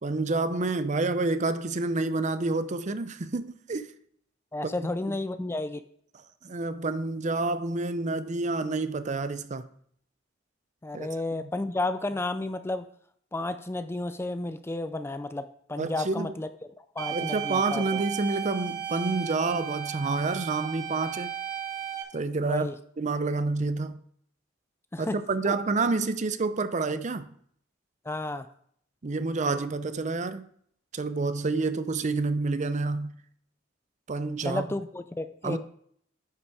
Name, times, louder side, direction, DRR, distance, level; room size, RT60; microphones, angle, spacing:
voice 1, 0.0-3.9 4.6-5.2 6.4-9.7 10.9-11.1 11.4-11.5 15.8-16.3 17.1-21.3 22.1-24.0 25.0-27.2 29.0-30.4 30.9-33.1 34.1-34.6 35.4-35.6, right 3 dB, 40° right, 0.6 m, -28 dB
voice 2, 4.5-5.8 10.8-12.9 13.3-16.5 17.0-18.0 22.5-22.8 24.9-25.2 25.4-25.5 28.1-28.5 34.4-35.6, left 2 dB, 15° left, 0.4 m, -32 dB
sound 1, 17.0-22.0, right 10 dB, 55° right, 1.7 m, -35 dB
9.6 x 6.1 x 4.8 m
head